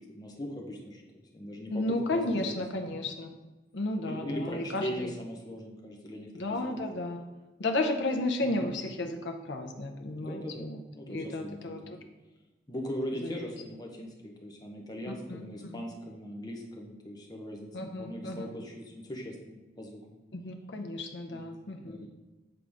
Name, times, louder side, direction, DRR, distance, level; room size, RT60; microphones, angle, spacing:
voice 1, 0.1-2.6 4.0-6.7 8.4-8.7 10.2-12.0 12.7-20.2 21.3-21.5 21.7-22.1, equal, 20° left, 0 dB, 0.9 m, -40 dB
voice 2, 1.7-3.4 3.7-5.1 6.3-7.2 7.6-10.8 11.1-12.0 13.2-13.3 15.3-15.8 17.7-18.5 20.3-22.0, left 2 dB, 80° left, 4 dB, 0.7 m, -33 dB
7.9 x 3.8 x 3.5 m, 1.2 s
head